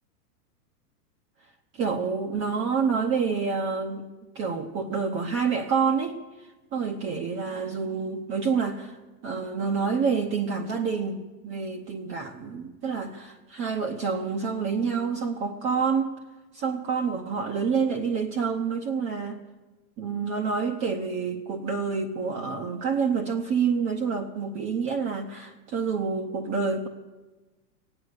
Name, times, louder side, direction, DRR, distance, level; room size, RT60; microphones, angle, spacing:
voice 1, 1.7-4.1 4.3-9.0 9.2-16.1 16.5-19.4 20.0-26.9, right 5 dB, 25° right, 2 dB, 0.8 m, -28 dB
16.0 x 9.8 x 8.2 m, 1.2 s
hypercardioid pair, 130°, 49 cm